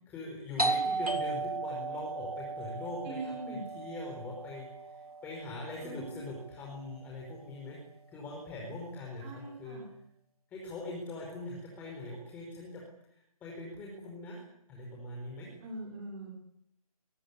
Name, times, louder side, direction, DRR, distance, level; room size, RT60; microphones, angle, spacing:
voice 1, 0.0-7.8 8.1-9.8 10.5-12.8 13.1-14.4 14.7-15.5, left 2 dB, 10° left, -1 dB, 5.0 m, -42 dB
Doorbell, 0.6-6.0, right 3 dB, 80° right, 4.8 m, -35 dB
voice 2, 3.0-3.6 5.8-6.2 9.2-9.8 15.6-16.3, right 2 dB, 15° right, -1 dB, 5.0 m, -42 dB
27.0 x 22.5 x 8.5 m, 0.76 s
hypercardioid pair, 165°, 19 cm